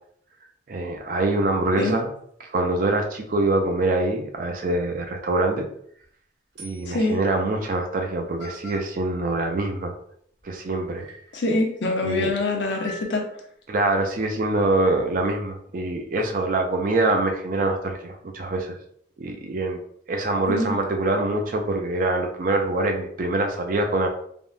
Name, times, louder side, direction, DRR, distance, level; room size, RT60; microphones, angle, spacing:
voice 1, 0.7-2.1 2.4-5.7 6.6-9.9 10.4-11.0 12.0-12.3 13.7-18.8 19.2-19.8 20.1-24.1, right 2 dB, 45° right, 3 dB, 0.4 m, -24 dB
sound 1, 5.7-6.0 6.6-7.2 8.0-8.1 8.4-8.9 10.4-10.5 11.0-11.4 12.7-13.4, equal, 85° right, 1.1 m, -43 dB
voice 2, 6.9-7.2 11.3-13.2 20.5-20.7, left 2 dB, 75° left, 2 dB, 0.6 m, -24 dB
3.4 x 2.2 x 2.4 m, 0.65 s
head